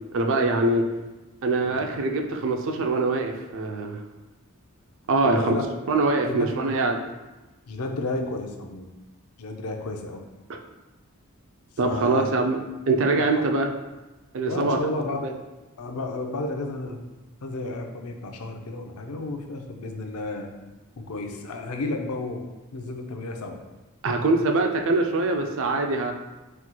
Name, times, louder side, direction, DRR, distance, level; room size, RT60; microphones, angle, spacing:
voice 1, 0.1-0.8 1.4-4.0 5.1-5.5 5.9-7.0 10.5-10.6 11.8-12.6 12.9-13.7 14.3-14.8 24.0-26.1, right 3 dB, 60° right, 3 dB, 0.5 m, -23 dB
voice 2, 5.2-5.6 6.2-6.5 7.7-8.9 9.4-10.2 11.8-12.3 13.4-13.5 14.5-15.4 15.8-17.0 17.4-20.5 21.0-22.4 22.7-23.6, left 2 dB, 85° left, 4 dB, 0.5 m, -32 dB
4.4 x 4.3 x 2.2 m, 1.1 s
head